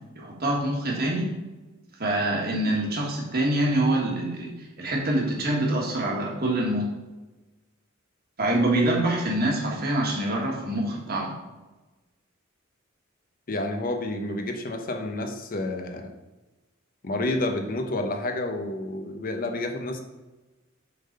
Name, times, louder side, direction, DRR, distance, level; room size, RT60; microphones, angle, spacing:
voice 1, 0.1-1.3 2.0-6.9 8.4-11.3, right 1 dB, 50° right, -1 dB, 1.6 m, -25 dB
voice 2, 13.5-16.1 17.0-20.0, left 2 dB, 45° left, 5 dB, 0.8 m, -29 dB
6.9 x 4.0 x 5.3 m, 1.1 s
head